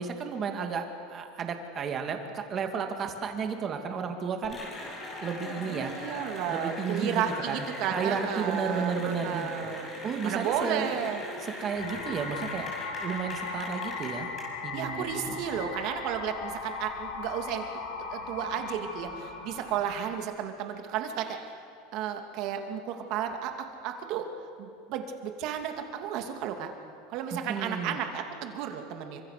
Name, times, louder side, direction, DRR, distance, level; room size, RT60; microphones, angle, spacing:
voice 1, 0.0-4.6 5.2-5.9 6.5-9.5 10.0-11.0 11.4-12.7 13.0-14.3 14.6-15.4 27.5-28.0, right 6 dB, 25° right, 5 dB, 2.3 m, -33 dB
Cheering / Applause, 4.4-14.4, left 1 dB, 20° left, 6.6 m, -40 dB
voice 2, 5.6-9.9 10.2-11.2 14.7-17.6 18.1-21.4 21.9-23.5 23.8-24.3 24.6-26.7 27.1-29.2, right 9 dB, 50° right, 5 dB, 2.6 m, -33 dB
sound 1, 11.7-20.2, left 4 dB, 90° left, 5.0 m, -38 dB
28.5 x 25.0 x 6.8 m, 2.4 s
supercardioid pair, 160°, 0 cm